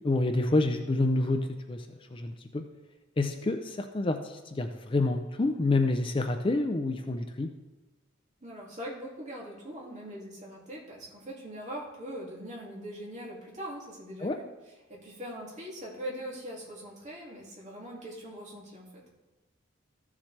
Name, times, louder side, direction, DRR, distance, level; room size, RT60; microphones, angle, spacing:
voice 1, 0.0-2.6 3.2-7.5 14.2-14.4, left 2 dB, 25° left, 6 dB, 0.5 m, -28 dB
voice 2, 8.4-14.4 14.9-19.1, equal, 40° right, -4 dB, 2.4 m, -41 dB
14.5 x 7.2 x 3.3 m, 1.2 s
head